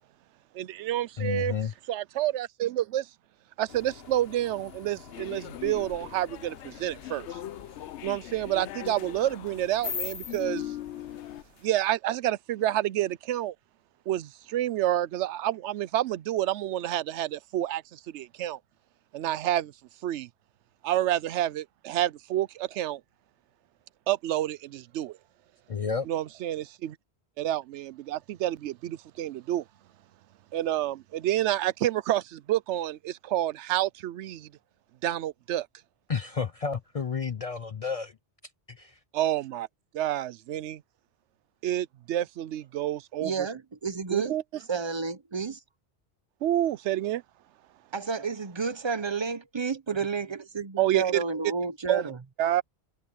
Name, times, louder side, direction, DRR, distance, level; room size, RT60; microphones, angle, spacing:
voice 1, 0.5-1.6 1.9-3.1 3.6-7.4 8.0-10.7 11.6-13.5 14.1-18.6 19.1-19.7 20.0-20.3 20.8-23.0 24.1-25.2 26.1-27.0 27.4-29.6 30.5-34.5 35.0-35.7 39.1-39.7 39.9-40.8 41.6-43.5 44.1-44.4 46.4-47.2 50.8-51.0 51.9-52.0 52.4-52.6, right 13 dB, 85° right, 0.9 m, -29 dB
voice 2, 1.2-1.7 25.7-26.1 36.1-38.1 38.7-39.0, left 6 dB, 45° left, 0.5 m, -31 dB
sound 1, 3.7-11.7, left 6 dB, 60° left, 1.5 m, -43 dB
sound 2, 5.1-11.4, left 12 dB, 85° left, 0.9 m, -40 dB
voice 3, 43.2-44.4 44.7-45.6 47.9-52.2, right 5 dB, 30° right, 0.7 m, -31 dB
omnidirectional pair, 1.1 m